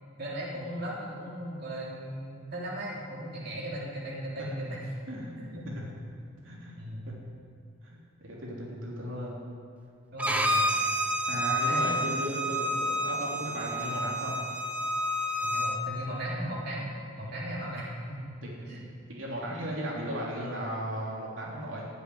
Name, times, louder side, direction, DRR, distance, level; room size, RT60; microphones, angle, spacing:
voice 1, 0.2-4.8 5.4-5.6 6.8-7.1 10.1-10.9 11.5-12.1 15.4-16.9 17.2-18.4 18.7-18.9 19.5-19.7, right 1 dB, 50° right, -5 dB, 3.6 m, -37 dB
voice 2, 6.4-6.7 7.8-9.3 11.3-14.4 18.4-18.7 19.1-21.9, equal, 70° right, -4 dB, 3.2 m, -36 dB
Bowed string instrument, 10.2-15.8, equal, 5° right, 0.9 m, -29 dB
17.0 x 8.1 x 9.6 m, 2.5 s
head